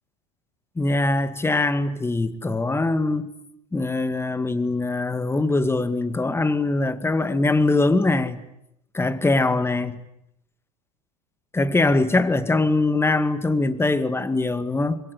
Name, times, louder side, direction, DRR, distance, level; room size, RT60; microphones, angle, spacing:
voice 1, 0.8-3.3 3.7-8.4 8.9-10.0 11.5-15.0, left 2 dB, 10° left, 2.0 m, -22 dB
26.5 x 21.5 x 9.8 m
hypercardioid pair, 90°, 21 cm